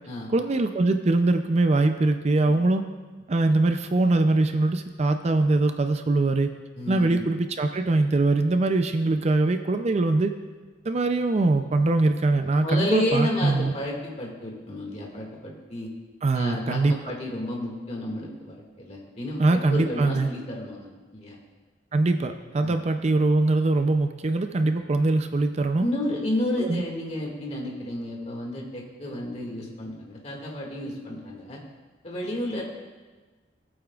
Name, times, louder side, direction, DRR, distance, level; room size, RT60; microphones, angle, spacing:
voice 1, 0.3-2.8 3.3-6.5 6.9-10.3 10.8-13.7 16.2-16.9 19.4-20.3 21.9-25.9 26.6-26.8, right 2 dB, 35° right, 7 dB, 0.4 m, -22 dB
voice 2, 6.8-7.2 12.6-15.9 16.3-21.4 22.6-22.8 25.8-31.6 32.0-32.6, left 1 dB, 40° left, -1 dB, 2.0 m, -31 dB
19.0 x 8.7 x 2.4 m, 1.3 s
head